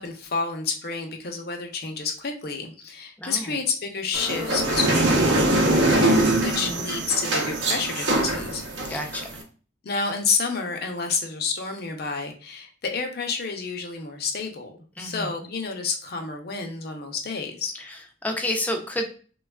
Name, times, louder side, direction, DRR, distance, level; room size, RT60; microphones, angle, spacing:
voice 1, 0.0-8.6 8.9-9.1 9.8-17.7, left 4 dB, 55° left, 4 dB, 0.6 m, -30 dB
voice 2, 3.2-3.5 6.5-7.0 8.9-9.3 15.0-15.3 17.8-19.0, left 1 dB, 10° left, 3 dB, 0.4 m, -30 dB
sound 1, 4.1-9.4, right 1 dB, 70° right, 0.6 m, -23 dB
3.3 x 2.3 x 2.2 m, 0.40 s
head